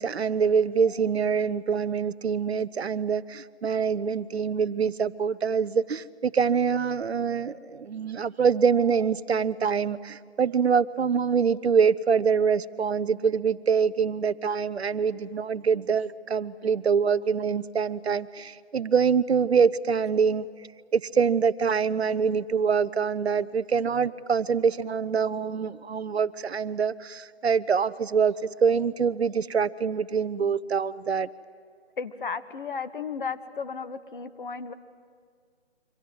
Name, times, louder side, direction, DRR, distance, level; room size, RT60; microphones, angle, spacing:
voice 1, 0.0-20.5 20.9-28.3 28.6-31.3, right 6 dB, 70° right, 16 dB, 0.9 m, -25 dB
voice 2, 32.0-34.7, left 5 dB, 50° left, 11 dB, 1.3 m, -34 dB
28.0 x 25.0 x 7.8 m, 2.1 s
hypercardioid pair, 165°, 33 cm